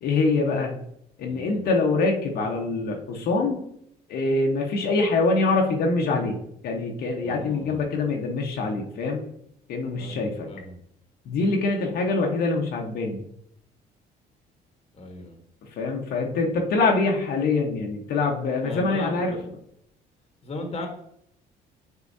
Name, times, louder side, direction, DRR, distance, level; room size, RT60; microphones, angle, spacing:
voice 1, 0.0-0.8 1.2-3.6 4.1-6.4 6.6-9.2 9.7-10.5 11.2-13.2 15.8-19.3, left 3 dB, 70° left, 0 dB, 1.2 m, -24 dB
voice 2, 1.3-1.6 7.2-7.9 10.0-10.8 14.9-15.4 18.6-19.5 20.4-20.9, left 2 dB, 35° left, 3 dB, 1.4 m, -37 dB
8.4 x 4.1 x 2.8 m, 0.71 s
cardioid pair, 110°, 17 cm